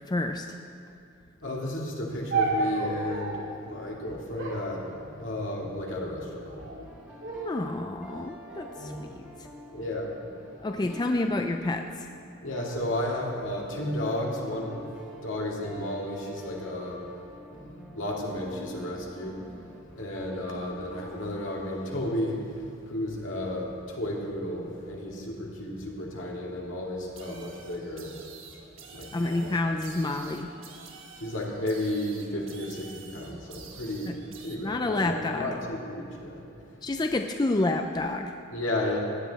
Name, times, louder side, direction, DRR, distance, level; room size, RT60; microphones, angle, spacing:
voice 1, 0.1-0.5 7.4-9.1 10.6-12.1 29.1-30.5 34.1-34.2 34.6-35.5 36.8-38.3, left 2 dB, 20° left, 5 dB, 0.4 m, -29 dB
voice 2, 1.4-6.7 8.8-9.1 9.7-10.1 12.4-14.8 15.2-17.1 17.6-19.4 19.9-28.1 28.9-29.5 31.2-34.2 34.4-36.4 38.5-39.0, left 1 dB, 70° left, -2 dB, 2.3 m, -33 dB
sound 1, 2.3-3.6 4.4-5.6 6.3-6.8 7.2-7.8 8.5-9.7 10.5-11.0, right 3 dB, 60° right, 2.6 m, -33 dB
sound 2, 6.6-23.5, equal, 5° right, 1.7 m, -48 dB
sound 3, 27.2-34.6, right 5 dB, 85° right, 1.3 m, -48 dB
16.5 x 10.5 x 4.1 m, 2.6 s
head